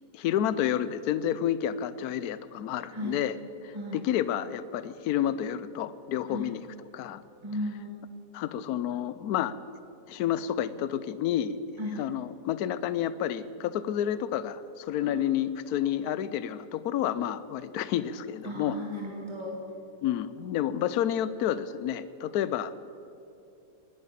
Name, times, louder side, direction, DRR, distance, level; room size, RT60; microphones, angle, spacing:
voice 1, 0.1-3.3 3.6-6.6 6.9-7.2 8.3-9.5 10.1-11.6 12.0-18.8 20.0-22.7, left 10 dB, 70° left, 15 dB, 1.1 m, -30 dB
voice 2, 3.7-4.1 6.3-6.5 7.4-8.0 11.8-12.0 15.0-15.5 18.4-19.6, left 1 dB, 15° right, -2 dB, 2.0 m, -36 dB
19.0 x 9.6 x 7.5 m, 2.7 s
omnidirectional pair, 1.8 m